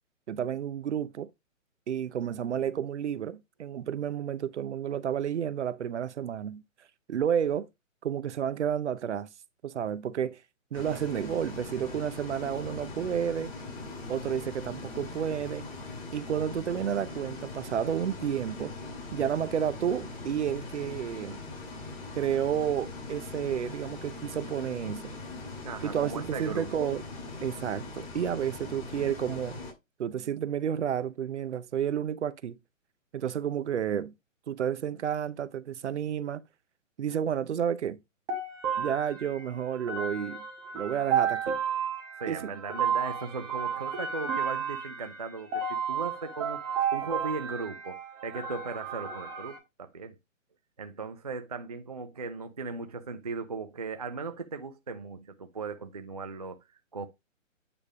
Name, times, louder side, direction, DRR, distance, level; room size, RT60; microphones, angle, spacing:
voice 1, 0.3-1.3 1.9-6.6 7.1-7.7 8.0-9.3 9.6-10.4 10.7-13.5 14.1-15.6 16.1-18.8 19.1-21.4 22.1-25.1 25.8-27.0 27.4-29.6 30.0-32.6 33.1-34.1 34.5-36.4 37.0-38.0 38.8-40.5 40.7-41.6 42.3-42.5, right 9 dB, 60° right, 0.7 m, -31 dB
Bus, 10.7-29.7, left 3 dB, 45° left, 5.4 m, -41 dB
voice 2, 25.6-26.9 42.1-50.2 50.8-56.6 56.9-57.1, right 4 dB, 30° right, 0.4 m, -38 dB
sound 1, 38.3-49.6, right 7 dB, 10° right, 0.8 m, -32 dB
8.8 x 3.3 x 5.0 m
hypercardioid pair, 155°, 40 cm